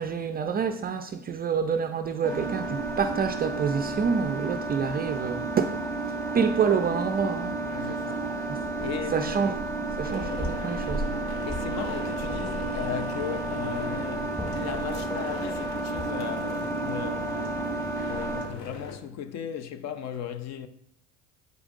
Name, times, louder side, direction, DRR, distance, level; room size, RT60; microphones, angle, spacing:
voice 1, 0.0-5.8 6.3-7.5 8.2-8.6 9.1-9.7 10.0-11.0, right 6 dB, 25° right, 0.3 m, -27 dB
sound 1, 2.2-18.4, right 2 dB, 10° left, 1.5 m, -31 dB
sound 2, 2.3-19.0, left 4 dB, 60° left, 1.0 m, -43 dB
voice 2, 7.6-8.3 8.8-9.3 11.5-17.6 18.0-20.7, left 9 dB, 45° left, 0.5 m, -37 dB
8.0 x 4.9 x 2.5 m
supercardioid pair, 95°, 39 cm